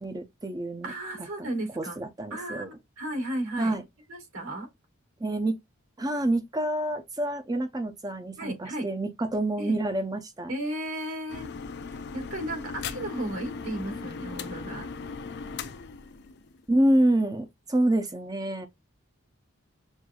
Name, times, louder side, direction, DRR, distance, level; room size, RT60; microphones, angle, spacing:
voice 1, 0.0-0.9 1.4-1.5 1.8-2.7 3.6-3.8 5.2-5.6 6.0-10.5 16.7-18.7, right 1 dB, 15° right, 0.6 m, -27 dB
voice 2, 0.8-2.0 2.3-3.8 4.1-4.7 8.4-8.9 9.6-9.8 10.5-11.5 11.9-14.9, right 1 dB, 75° right, 2.4 m, -34 dB
sound 1, 11.3-16.8, left 5 dB, 50° left, 0.4 m, -38 dB
6.3 x 2.6 x 2.3 m
head